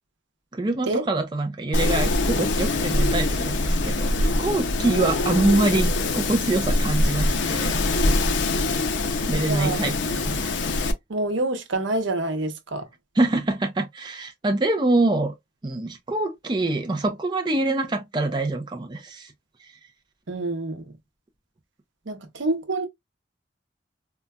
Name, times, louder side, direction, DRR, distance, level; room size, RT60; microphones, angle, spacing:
voice 1, 0.5-7.8 9.3-10.5 13.2-15.3 15.6-19.3, right 2 dB, 25° right, 0.4 m, -25 dB
Wind, 1.7-10.9, left 2 dB, 75° left, 0.6 m, -23 dB
voice 2, 9.3-9.8 11.1-12.9 20.3-20.9 22.1-22.9, right 2 dB, 85° right, 0.8 m, -27 dB
3.8 x 2.2 x 2.2 m
head